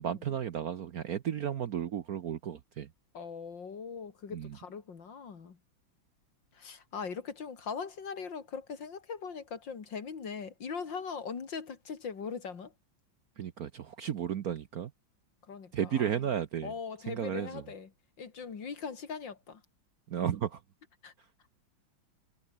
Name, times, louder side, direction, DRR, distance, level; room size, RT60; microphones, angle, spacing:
voice 1, 0.0-2.9 4.3-4.6 13.4-14.9 15.7-16.7 17.1-17.6 20.1-20.6, right 9 dB, 55° right, 1.2 m, -33 dB
voice 2, 3.1-5.6 6.5-12.7 15.5-16.1 16.6-17.9 18.2-19.6 21.0-21.1, left 6 dB, 65° left, 3.0 m, -40 dB
omnidirectional pair, 2.2 m